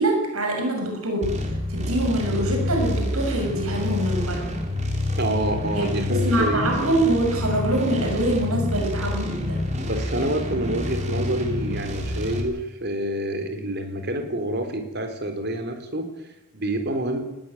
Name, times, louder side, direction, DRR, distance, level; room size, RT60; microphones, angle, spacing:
voice 1, 0.0-1.3 1.7-4.5 5.7-9.6, right 1 dB, 85° right, 2 dB, 6.8 m, -24 dB
sound 1, 1.2-12.4, left 2 dB, 35° right, 3.8 m, -27 dB
voice 2, 5.2-7.1 9.8-17.2, right 1 dB, 50° right, 6 dB, 4.0 m, -28 dB
20.5 x 17.5 x 9.4 m, 0.91 s
head